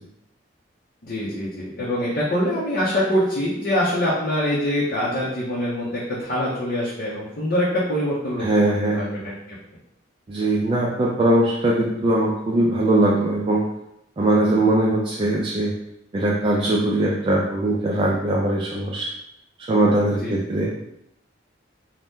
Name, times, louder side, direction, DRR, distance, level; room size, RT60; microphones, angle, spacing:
voice 1, 1.0-8.5 8.9-9.3 20.2-20.3, equal, 50° left, -7 dB, 0.6 m, -24 dB
voice 2, 8.4-9.1 10.3-13.6 14.2-15.7 16.1-19.1 19.6-20.7, right 1 dB, 30° right, -4 dB, 0.3 m, -21 dB
2.7 x 2.1 x 3.4 m, 0.82 s
head